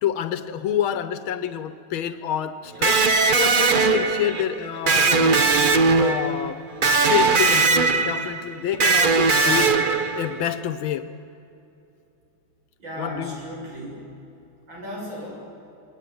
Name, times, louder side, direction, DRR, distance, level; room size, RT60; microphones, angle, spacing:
voice 1, 0.0-3.0 3.3-5.5 5.9-6.6 7.1-9.8 10.2-11.1 13.0-13.4, left 10 dB, 90° left, 11 dB, 1.8 m, -27 dB
Electric guitar, 2.8-10.5, right 4 dB, 40° right, 0.8 m, -20 dB
voice 2, 12.8-14.0 14.7-15.3, equal, 70° right, -3 dB, 7.6 m, -35 dB
28.0 x 20.0 x 9.4 m, 2.8 s
omnidirectional pair, 2.2 m